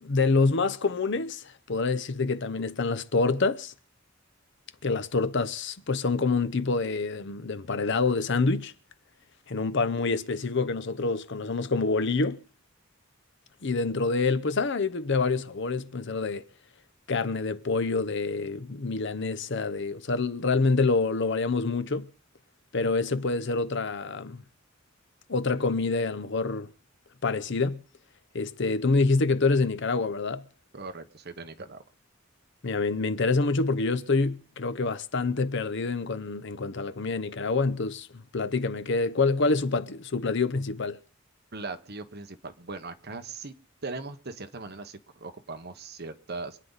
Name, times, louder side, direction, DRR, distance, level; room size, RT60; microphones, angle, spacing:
voice 1, 0.0-3.7 4.8-8.7 9.5-12.4 13.6-16.5 17.1-22.1 22.7-24.4 25.3-26.7 27.2-27.8 28.3-30.4 32.6-41.0, left 3 dB, 60° left, 0.8 m, -27 dB
voice 2, 30.7-31.8 41.5-43.5 43.8-46.6, right 3 dB, 50° right, 1.2 m, -39 dB
25.5 x 9.6 x 4.1 m
head